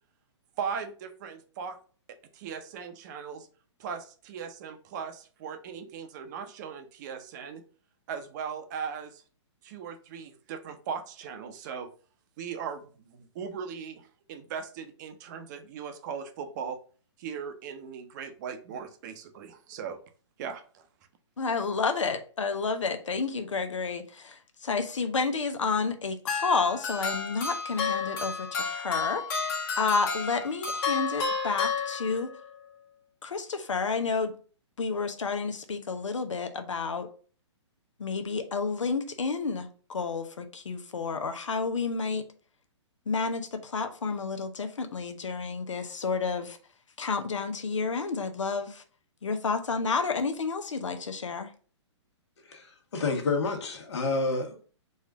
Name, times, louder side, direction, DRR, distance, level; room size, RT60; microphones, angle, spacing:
voice 1, 0.6-1.8 2.1-3.5 3.8-7.6 8.1-9.2 9.6-11.9 12.4-16.8 17.2-20.0 20.4-20.9, right 6 dB, 40° right, 0.6 m, -38 dB
voice 2, 21.4-32.3 33.2-34.3 34.8-37.1 38.0-42.2 43.1-46.6 47.0-48.8 49.2-51.5, left 4 dB, 90° left, 0.7 m, -30 dB
sound 1, 26.3-32.4, left 5 dB, 45° left, 1.3 m, -31 dB
voice 3, 52.5-54.6, left 3 dB, 65° left, 1.3 m, -29 dB
4.2 x 2.5 x 4.7 m
hypercardioid pair, 140°, 15 cm